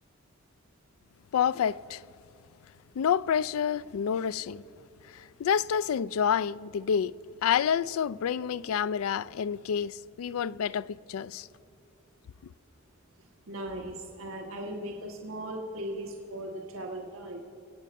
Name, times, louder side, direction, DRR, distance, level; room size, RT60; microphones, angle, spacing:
voice 1, 1.3-2.0 3.0-4.6 5.1-7.1 7.4-11.5, left 8 dB, 90° left, 0.3 m, -28 dB
voice 2, 13.5-17.4, right 1 dB, 80° right, 1.3 m, -38 dB
25.5 x 8.4 x 5.3 m
head